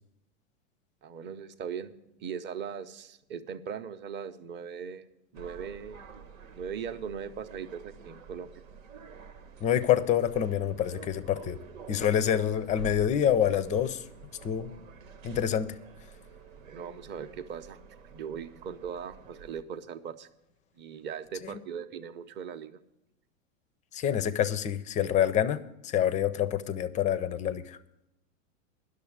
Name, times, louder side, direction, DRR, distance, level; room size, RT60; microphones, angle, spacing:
voice 1, 1.0-1.9 2.2-5.1 5.3-6.2 6.5-8.5 16.7-17.8 18.1-20.3 20.7-22.8, right 7 dB, 30° right, 0.7 m, -39 dB
sound 1, 5.3-19.6, right 7 dB, 90° right, 1.2 m, -47 dB
voice 2, 9.6-11.6 11.9-14.0 14.4-14.7 15.2-15.8 21.4-21.5 23.9-27.8, left 10 dB, 20° left, 0.4 m, -27 dB
10.5 x 6.5 x 8.6 m
hypercardioid pair, 120°, 39 cm